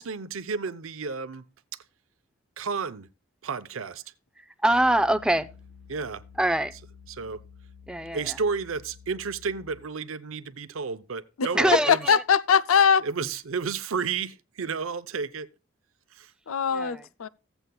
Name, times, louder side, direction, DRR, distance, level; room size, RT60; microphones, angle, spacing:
voice 1, 0.0-1.4 2.6-3.1 3.4-4.0 5.9-6.2 7.1-7.4 8.1-12.1 13.0-15.5 16.1-16.3, right 5 dB, 75° right, 0.7 m, -32 dB
voice 2, 4.4-5.5 6.4-6.7 7.9-8.4 11.5-12.2 16.7-17.1, right 1 dB, 5° right, 0.4 m, -24 dB
sound 1, 4.7-10.0, left 6 dB, 35° left, 0.8 m, -51 dB
voice 3, 11.9-13.0 16.5-17.3, left 7 dB, 80° left, 0.5 m, -21 dB
15.5 x 7.9 x 2.3 m
head